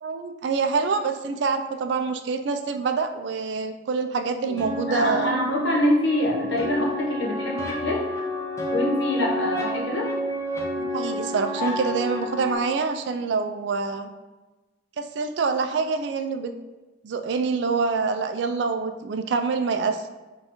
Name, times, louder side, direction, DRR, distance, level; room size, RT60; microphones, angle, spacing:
voice 1, 0.0-5.3 10.8-14.1 15.0-16.5 17.0-20.1, right 4 dB, 65° right, 7 dB, 0.3 m, -26 dB
sound 1, 4.6-12.6, equal, 15° left, 0.5 m, -30 dB
voice 2, 4.9-8.0 8.7-10.1, left 1 dB, 65° left, -2 dB, 0.9 m, -25 dB
5.4 x 2.3 x 2.9 m, 1.2 s
head